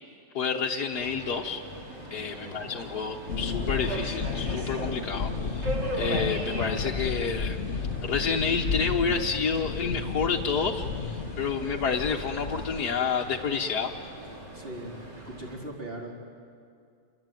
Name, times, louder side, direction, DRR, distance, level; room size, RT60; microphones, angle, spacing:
voice 1, 0.3-1.6 2.1-13.9, left 5 dB, 60° left, -1 dB, 1.6 m, -29 dB
Subway metro underground, 0.9-15.5, right 1 dB, 70° right, 4.8 m, -40 dB
sound 1, 3.3-12.8, left 5 dB, 40° left, 1.3 m, -32 dB
voice 2, 14.5-16.1, right 1 dB, 30° right, -1 dB, 4.1 m, -40 dB
28.0 x 22.5 x 9.2 m, 2.3 s
omnidirectional pair, 1.9 m